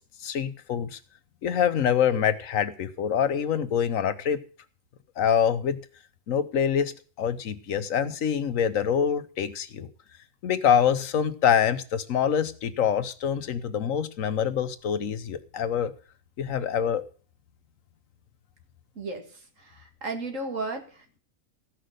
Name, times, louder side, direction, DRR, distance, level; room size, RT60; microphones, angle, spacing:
voice 1, 0.2-1.0 1.4-4.4 5.2-5.8 6.3-6.9 7.2-9.9 10.4-15.9 16.4-17.0, left 8 dB, 90° left, 12 dB, 1.3 m, -25 dB
voice 2, 19.0-21.2, right 3 dB, 75° right, 4 dB, 2.4 m, -35 dB
15.0 x 6.0 x 6.5 m, 0.40 s
omnidirectional pair, 1.3 m